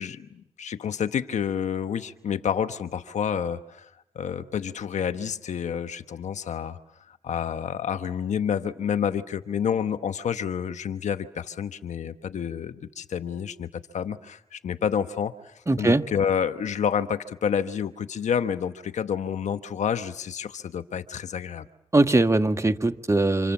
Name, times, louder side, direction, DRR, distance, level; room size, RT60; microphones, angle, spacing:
voice 1, 0.0-3.9 4.1-6.8 7.1-13.7 13.9-21.7, left 8 dB, 85° left, 10 dB, 1.2 m, -29 dB
voice 2, 15.7-16.0 21.9-23.5, right 2 dB, 25° right, 9 dB, 1.6 m, -21 dB
30.0 x 27.0 x 7.3 m, 0.82 s
cardioid pair, 45°, 12 cm